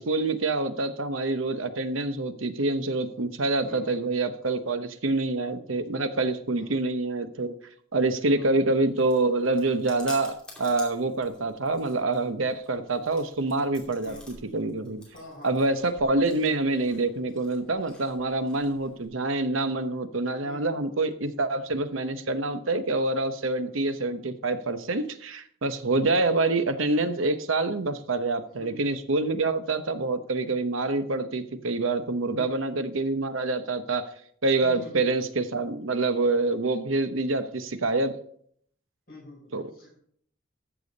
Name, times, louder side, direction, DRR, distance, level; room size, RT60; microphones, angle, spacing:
voice 1, 0.0-7.5 7.9-15.0 15.4-34.1 34.4-38.1 39.5-39.6, right 2 dB, 85° right, 10 dB, 0.9 m, -26 dB
voice 2, 3.7-4.0 5.0-5.2 6.5-6.7 8.3-8.5 14.0-14.2 15.1-15.9 20.4-20.6 26.1-26.3 28.6-29.1 32.4-32.5 34.6-35.1 39.1-39.9, left 1 dB, 40° left, -9 dB, 5.4 m, -46 dB
Chewing mastication, 8.4-19.1, left 1 dB, 5° left, 2.6 m, -50 dB
13.5 x 7.1 x 4.0 m, 0.63 s
head